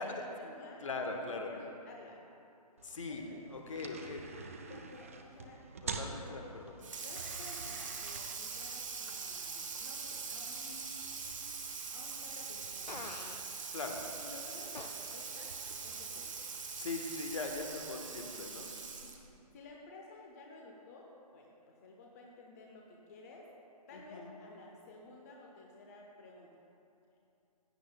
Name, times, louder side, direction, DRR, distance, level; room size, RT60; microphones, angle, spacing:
voice 1, 0.0-2.2 3.1-3.4 3.7-3.8 4.7-5.6 6.0-6.6 7.0-11.6 11.9-15.5 15.8-16.3 19.0-19.2 19.5-23.5 23.9-26.6, left 2 dB, 25° left, -1 dB, 0.7 m, -54 dB
voice 2, 0.8-1.5 2.8-3.2 3.5-4.2 6.0-6.4 13.7-14.0 16.8-18.7 23.9-24.3, left 3 dB, 50° left, 3 dB, 1.1 m, -40 dB
sound 1, 2.8-17.8, right 4 dB, 20° right, 0.3 m, -50 dB
Water tap faucet / Sink (filling or washing), 6.8-19.3, right 5 dB, 50° right, 1.1 m, -43 dB
Fart, 12.9-13.4 14.7-14.9, left 2 dB, 90° left, 0.7 m, -44 dB
15.5 x 10.0 x 2.2 m, 2.7 s
figure-of-eight pair, 140°, 21 cm